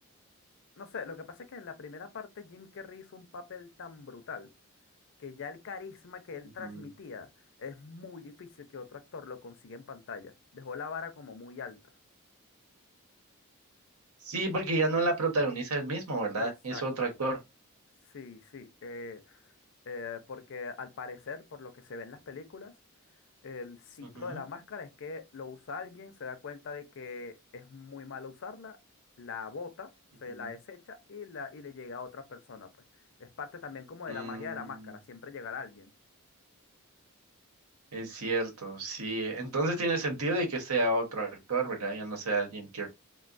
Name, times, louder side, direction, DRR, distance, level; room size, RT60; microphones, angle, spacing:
voice 1, 0.8-4.5 5.2-7.3 7.6-11.8 16.4-16.8 18.1-19.4 19.9-22.7 23.4-28.8 29.2-29.9 30.2-32.7 33.2-35.9, left 5 dB, 60° left, 0.5 m, -42 dB
voice 2, 14.2-17.4 24.1-24.4 30.4-30.5 34.1-34.6 37.9-42.9, right 2 dB, 85° right, 1.0 m, -31 dB
3.5 x 2.2 x 2.5 m
head